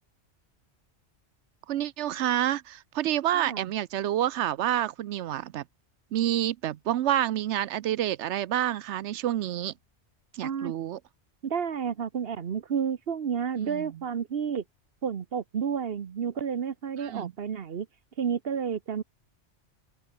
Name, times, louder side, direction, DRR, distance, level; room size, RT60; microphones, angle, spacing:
voice 1, 1.7-5.6 6.1-9.7 10.3-11.0 13.6-13.9 17.0-17.3, right 12 dB, 80° right, 0.9 m, -28 dB
voice 2, 3.3-3.7 10.4-10.7 11.4-14.6 15.0-17.9 18.2-19.0, right 7 dB, 60° right, 1.1 m, -31 dB
open air
omnidirectional pair, 1.2 m